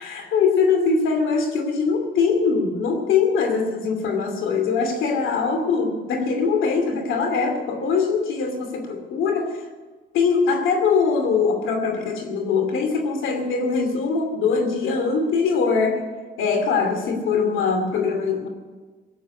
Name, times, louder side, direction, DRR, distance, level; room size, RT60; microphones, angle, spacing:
voice 1, 0.0-9.7 10.1-16.0 16.4-18.5, left 5 dB, 85° left, 5 dB, 2.6 m, -22 dB
19.0 x 7.5 x 8.4 m, 1.4 s
cardioid pair, 90°, 20 cm